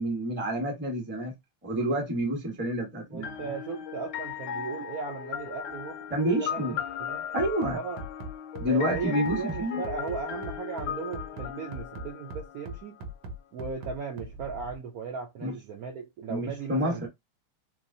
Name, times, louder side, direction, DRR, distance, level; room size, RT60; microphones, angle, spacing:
voice 1, 0.0-1.3 1.6-3.3 6.1-6.8 7.3-7.8 8.6-9.8 15.4-15.5 16.3-17.1, equal, 10° right, 0.5 m, -28 dB
voice 2, 3.1-6.7 7.0-7.2 7.7-8.0 8.7-13.0 13.5-17.1, right 5 dB, 85° right, 0.7 m, -37 dB
sound 1, 3.2-13.0, left 8 dB, 80° left, 0.9 m, -37 dB
Bass drum, 7.4-14.8, right 1 dB, 65° right, 1.1 m, -39 dB
3.3 x 3.0 x 2.7 m
omnidirectional pair, 2.4 m